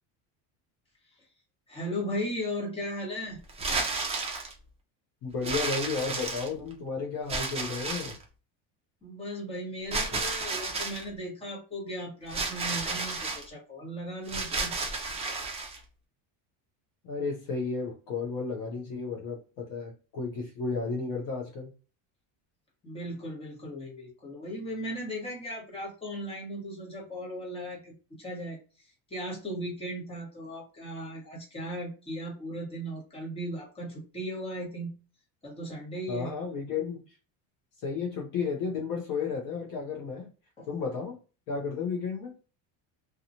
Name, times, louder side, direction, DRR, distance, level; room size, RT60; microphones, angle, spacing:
voice 1, 1.7-3.4 9.0-14.7 22.8-28.6 29.1-34.9 35.4-36.3 40.6-40.7, equal, 15° left, 1.0 m, -37 dB
sound 1, 3.5-4.5 5.4-6.7 7.3-8.2 9.9-11.0 12.3-13.4 14.3-15.8, right 3 dB, 15° right, 0.4 m, -32 dB
voice 2, 5.2-8.2 17.0-21.7 36.1-37.0 37.8-40.3 40.7-41.2 41.5-42.4, left 5 dB, 45° left, 0.7 m, -33 dB
2.9 x 2.3 x 2.6 m
cardioid pair, 155°, 44 cm